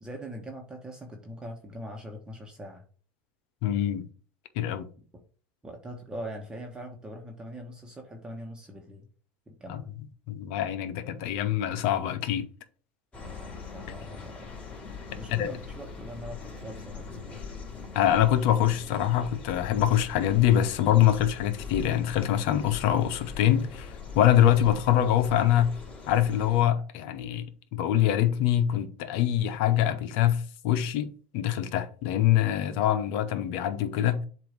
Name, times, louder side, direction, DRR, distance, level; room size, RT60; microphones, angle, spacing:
voice 1, 0.0-2.8 4.7-4.8 5.6-9.0 9.5-9.9 13.2-14.4 15.1-17.4, equal, 15° right, 1.2 m, -42 dB
voice 2, 3.6-4.1 4.5-4.9 9.7-9.8 10.3-12.5 15.3-15.5 17.9-25.7 26.1-34.3, left 11 dB, 70° left, 0.8 m, -24 dB
sound 1, 13.1-26.6, left 5 dB, 25° left, 2.4 m, -41 dB
7.5 x 2.7 x 5.1 m
supercardioid pair, 110°, 6 cm